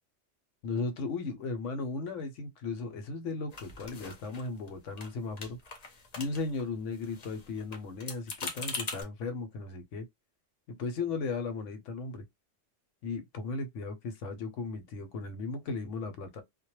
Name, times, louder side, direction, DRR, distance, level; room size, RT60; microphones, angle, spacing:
voice 1, 0.6-5.6 6.2-10.1 10.7-12.2 13.0-16.4, left 4 dB, 80° left, 0.9 m, -36 dB
sound 1, 3.5-4.7 5.0-5.1 5.4-6.6 6.9-9.0, left 4 dB, 45° left, 0.6 m, -41 dB
2.2 x 2.1 x 3.0 m
omnidirectional pair, 1.3 m